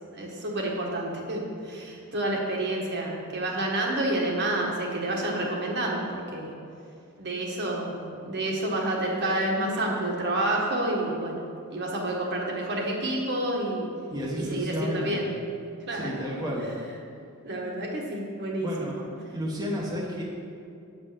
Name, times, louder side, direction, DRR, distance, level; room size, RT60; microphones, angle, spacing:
voice 1, 0.1-6.5 7.2-11.4 11.7-13.9 14.4-15.3 15.9-16.4 17.4-19.0, right 1 dB, 50° right, -2 dB, 1.5 m, -29 dB
voice 2, 14.1-15.2 15.9-16.7 18.6-18.9 19.3-20.2, equal, 15° right, -4 dB, 1.1 m, -31 dB
8.4 x 5.4 x 6.8 m, 2.5 s
head